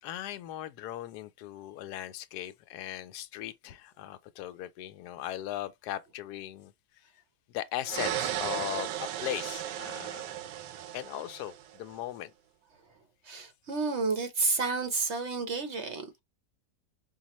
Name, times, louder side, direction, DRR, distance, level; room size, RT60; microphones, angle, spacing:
voice 1, 0.0-6.7 7.5-10.4 10.9-12.3, left 13 dB, 75° left, 1.1 m, -38 dB
sound 1, 7.9-11.8, right 11 dB, 85° right, 1.2 m, -35 dB
voice 2, 13.2-16.2, right 4 dB, 55° right, 0.9 m, -30 dB
5.3 x 2.3 x 3.0 m
omnidirectional pair, 1.8 m